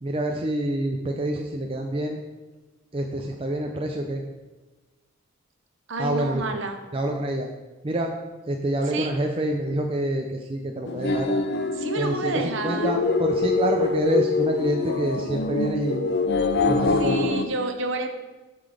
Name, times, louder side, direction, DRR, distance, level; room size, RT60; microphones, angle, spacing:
voice 1, 0.0-2.2 2.9-4.2 6.0-6.4 6.9-7.5 7.8-8.1 8.5-11.3 12.0-16.1 16.6-17.4, right 1 dB, 25° right, 2 dB, 0.5 m, -27 dB
voice 2, 5.9-6.8 8.9-9.1 11.7-12.9 17.0-18.1, right 3 dB, 55° right, 6 dB, 0.8 m, -29 dB
sound 1, 10.9-17.5, left 3 dB, 50° left, 0.5 m, -24 dB
8.2 x 3.9 x 6.6 m, 1.2 s
head